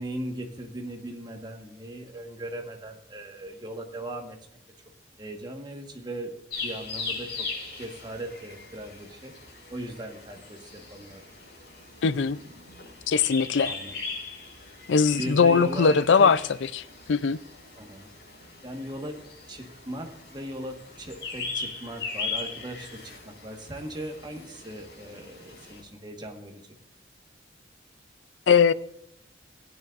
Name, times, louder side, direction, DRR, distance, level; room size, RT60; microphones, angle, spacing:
voice 1, 0.0-4.4 5.2-7.5 7.8-9.3 9.7-11.2 13.6-13.9 15.1-16.3 17.8-18.1 18.6-26.8, right 1 dB, 25° right, 1.4 m, -38 dB
sound 1, 6.5-25.8, left 4 dB, 60° left, 5.2 m, -39 dB
voice 2, 12.0-12.4 13.1-13.7 14.9-16.4 16.7-16.8 17.1-17.4 28.5-28.7, left 5 dB, 85° left, 0.5 m, -20 dB
17.0 x 9.4 x 2.5 m
head